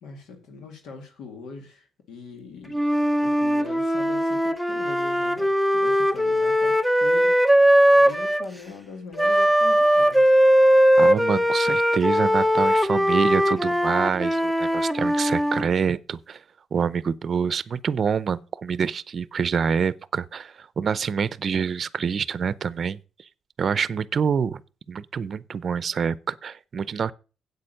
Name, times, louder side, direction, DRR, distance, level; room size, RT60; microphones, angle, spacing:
voice 1, 0.0-2.9 3.2-7.4 8.0-10.3, left 4 dB, 80° left, 2.0 m, -42 dB
Wind instrument woodwind instrument, 2.7-8.5 9.2-15.7, equal, ahead, 0.6 m, -20 dB
voice 2, 11.0-16.4 16.7-23.0 23.6-24.6 24.9-27.1, right 6 dB, 50° right, 0.6 m, -26 dB
8.6 x 8.1 x 6.6 m
cardioid pair, 90°, 0 cm